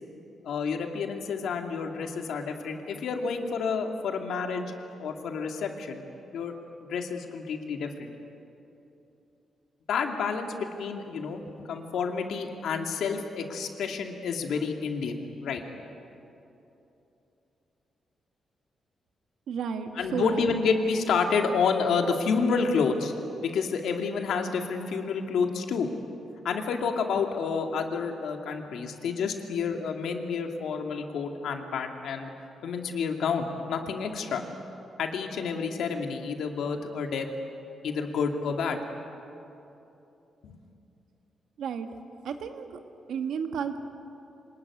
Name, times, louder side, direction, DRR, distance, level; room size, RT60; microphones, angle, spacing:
voice 1, 0.4-4.7 5.0-6.0 6.3-6.5 6.8-8.1 9.9-15.6 19.9-23.1 23.4-25.9 26.4-32.3 32.6-34.4 35.0-37.3 37.8-38.8 40.4-40.6, left 5 dB, 85° left, 4 dB, 2.4 m, -29 dB
voice 2, 19.5-20.5 41.6-41.9 42.2-42.8 43.1-43.8, right 6 dB, 80° right, 6 dB, 1.8 m, -32 dB
25.5 x 20.0 x 9.7 m, 2.9 s
cardioid pair, 125°, 0 cm